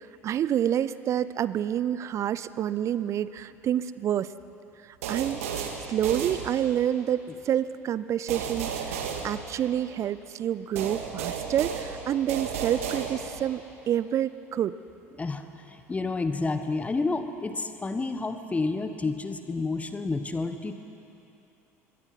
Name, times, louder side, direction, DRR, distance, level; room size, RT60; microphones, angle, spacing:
voice 1, 0.0-4.3 4.8-5.4 5.9-13.6 13.9-14.7, right 10 dB, 40° right, 16 dB, 0.6 m, -28 dB
sound 1, 5.0-6.9 8.3-10.0 10.8-13.5, right 7 dB, 65° right, 2.1 m, -33 dB
voice 2, 15.2-20.8, left 3 dB, 15° left, 8 dB, 1.4 m, -30 dB
25.5 x 22.0 x 6.0 m, 2.9 s
figure-of-eight pair, 65°, 8 cm